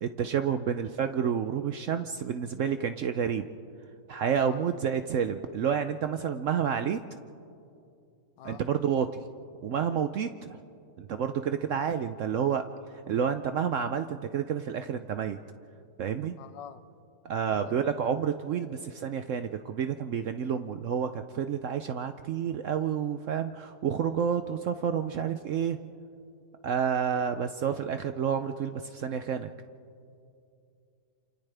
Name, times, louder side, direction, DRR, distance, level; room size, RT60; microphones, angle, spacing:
voice 1, 0.0-3.5 4.1-7.0 8.4-9.1 9.6-10.6 11.0-12.6 13.1-15.4 16.0-16.4 17.2-25.8 26.6-29.5, right 7 dB, 65° right, 0.7 m, -29 dB
voice 2, 16.4-16.8 17.6-17.8, left 9 dB, 90° left, 1.4 m, -46 dB
28.5 x 28.0 x 3.4 m
omnidirectional pair, 1.9 m